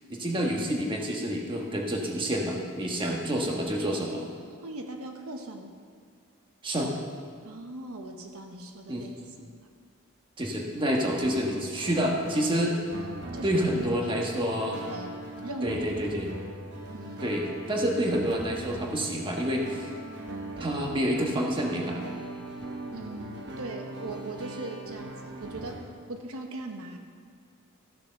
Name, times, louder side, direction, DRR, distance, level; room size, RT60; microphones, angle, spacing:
voice 1, 0.1-4.2 6.6-6.9 8.9-9.1 10.4-12.8 13.4-14.8 15.6-16.3 17.2-19.9 20.6-22.0, equal, 20° right, 0 dB, 1.3 m, -28 dB
voice 2, 4.5-5.7 7.4-9.1 9.4-9.6 13.3-14.2 14.5-15.8 16.9-17.3 22.9-27.0, right 2 dB, 80° right, 4 dB, 1.0 m, -40 dB
sound 1, 11.2-25.8, right 2 dB, 50° right, 1.2 m, -40 dB
14.0 x 6.6 x 6.5 m, 2.1 s
head